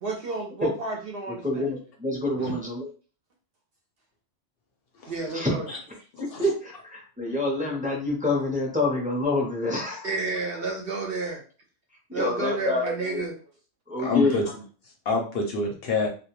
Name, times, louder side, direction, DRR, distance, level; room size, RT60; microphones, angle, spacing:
voice 1, 0.0-1.7 2.4-2.5 5.1-5.7 10.0-11.4 12.1-13.3, right 3 dB, 60° right, 1 dB, 0.7 m, -31 dB
voice 2, 1.3-2.9 5.3-5.8 6.2-10.1 12.1-13.2 13.9-14.4, left 2 dB, 10° right, -2 dB, 0.4 m, -27 dB
voice 3, 14.0-14.6 15.1-16.1, left 3 dB, 65° left, 1 dB, 0.7 m, -27 dB
2.2 x 2.2 x 2.9 m, 0.37 s
omnidirectional pair, 1.3 m